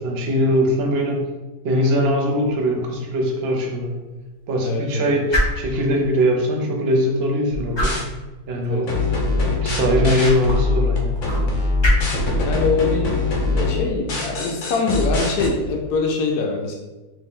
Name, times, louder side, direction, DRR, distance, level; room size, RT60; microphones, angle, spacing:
voice 1, 0.0-1.3 1.6-4.0 4.5-8.0 8.5-8.9 9.6-11.1, equal, 55° right, 1 dB, 0.7 m, -21 dB
sound 1, 2.3-15.9, equal, 35° left, 0.4 m, -31 dB
voice 2, 4.6-5.1 8.7-9.1 12.4-16.7, left 3 dB, 80° left, 0 dB, 1.1 m, -24 dB
sound 2, 7.5-8.0 8.9-15.5, left 3 dB, 60° left, 0.9 m, -22 dB
3.1 x 2.7 x 3.6 m, 1.1 s
omnidirectional pair, 1.7 m